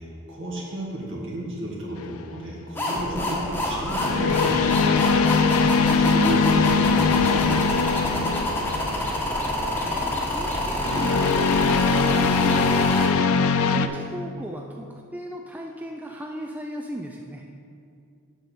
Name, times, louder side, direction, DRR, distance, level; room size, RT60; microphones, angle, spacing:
voice 1, 0.0-8.3, right 1 dB, 55° right, -3 dB, 1.7 m, -33 dB
sound 1, 2.0-2.3 3.9-9.0 10.8-13.9, left 5 dB, 65° left, 0.4 m, -21 dB
sound 2, 2.8-13.1, left 1 dB, 10° left, 1.1 m, -27 dB
voice 2, 9.9-12.9 13.6-17.4, equal, 5° right, 1 dB, 0.3 m, -36 dB
8.0 x 6.5 x 4.4 m, 2.4 s
head